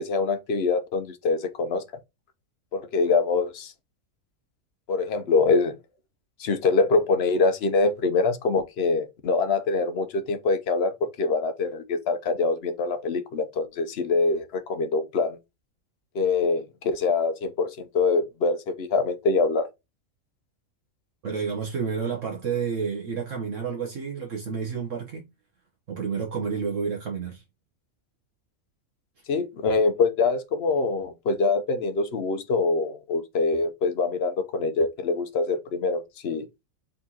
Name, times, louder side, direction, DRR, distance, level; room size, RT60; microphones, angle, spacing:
voice 1, 0.0-1.8 2.7-3.7 4.9-5.7 6.4-15.4 16.1-19.7 29.3-36.5, left 3 dB, 55° left, 0.8 m, -24 dB
voice 2, 21.2-25.2 25.9-27.4, right 6 dB, 60° right, 1.3 m, -30 dB
4.3 x 3.8 x 2.8 m
omnidirectional pair, 1.5 m